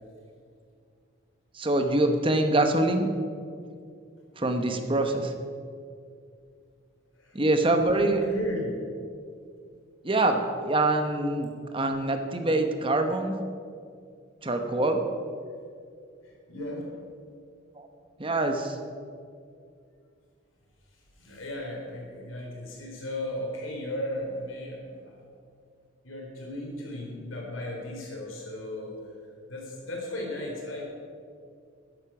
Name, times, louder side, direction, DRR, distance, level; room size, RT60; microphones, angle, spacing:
voice 1, 1.6-3.1 4.4-5.3 7.3-8.2 10.0-11.5 11.7-13.3 14.4-15.0 17.8-17.9 18.2-18.8, right 2 dB, 25° right, 6 dB, 1.0 m, -24 dB
voice 2, 7.9-8.9 16.2-16.9 20.9-25.2 26.0-29.2 29.5-30.8, left 1 dB, 90° left, -1 dB, 3.7 m, -36 dB
13.0 x 10.5 x 6.0 m, 2.3 s
head